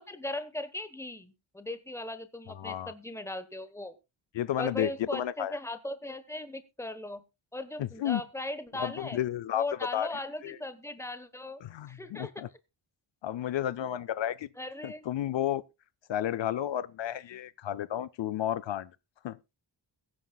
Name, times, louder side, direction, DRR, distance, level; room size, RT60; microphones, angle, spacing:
voice 1, 0.0-4.0 4.6-7.2 7.5-9.2 9.5-11.6 11.9-12.3 14.6-15.0, left 2 dB, 5° left, 1.1 m, -38 dB
voice 2, 2.6-2.9 4.3-5.6 7.8-8.2 8.8-9.6 9.9-10.1 10.4-10.6 11.6-12.5 13.2-14.5 14.8-15.6 16.1-18.9 19.2-19.4, left 11 dB, 70° left, 0.5 m, -32 dB
22.0 x 9.4 x 2.3 m
wide cardioid pair, 160°, 47 cm